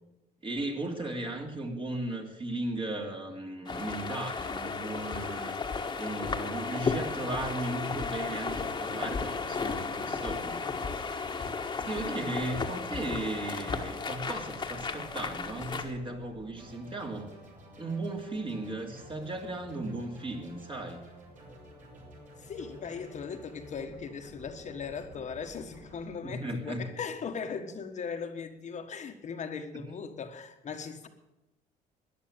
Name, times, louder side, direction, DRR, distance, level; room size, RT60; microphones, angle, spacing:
voice 1, 0.4-5.6 6.0-10.6 11.9-17.3 17.8-21.0 26.2-26.8 29.7-29.8, right 2 dB, 30° right, 2.8 m, -36 dB
sound 1, 3.7-15.9, left 4 dB, 25° left, 1.5 m, -34 dB
sound 2, 6.9-26.1, right 1 dB, 50° right, 6.5 m, -51 dB
voice 2, 22.4-31.1, left 6 dB, 45° left, 1.4 m, -38 dB
13.5 x 10.5 x 8.8 m
cardioid pair, 110°, 17 cm